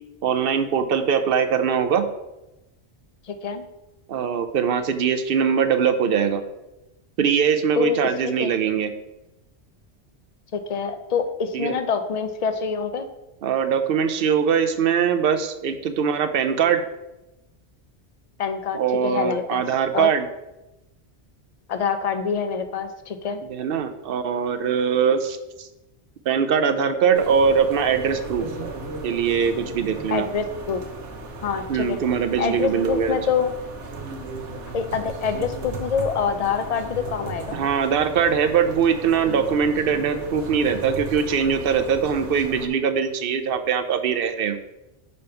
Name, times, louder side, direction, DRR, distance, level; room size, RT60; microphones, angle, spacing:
voice 1, 0.2-2.0 4.1-6.4 7.2-8.9 11.5-11.8 13.4-16.8 18.7-20.3 23.4-25.4 26.3-28.5 29.0-30.3 31.7-33.2 37.5-44.6, right 7 dB, 60° right, 9 dB, 0.7 m, -22 dB
voice 2, 3.3-3.6 7.8-8.5 10.5-13.1 18.4-19.6 19.9-20.1 21.7-23.4 30.1-30.8 31.4-32.0 32.4-33.5 34.7-37.7, left 6 dB, 45° left, 9 dB, 0.5 m, -26 dB
sound 1, 27.1-42.7, right 2 dB, 90° right, 1.2 m, -35 dB
5.2 x 4.1 x 5.5 m, 0.95 s
omnidirectional pair, 1.2 m